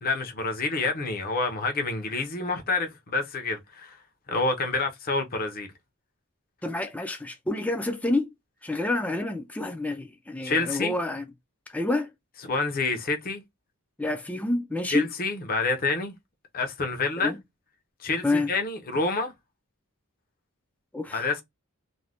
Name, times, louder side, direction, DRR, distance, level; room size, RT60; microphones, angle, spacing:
voice 1, 0.0-4.0 4.3-5.7 10.4-11.0 12.4-13.4 14.9-16.1 16.5-17.3 18.0-19.3 21.1-21.4, left 3 dB, 40° left, 0.6 m, -28 dB
voice 2, 6.6-8.3 8.6-11.2 11.7-12.1 14.0-15.1 17.2-17.4 18.2-18.5 20.9-21.2, left 2 dB, 5° left, 0.3 m, -28 dB
2.5 x 2.1 x 3.3 m
head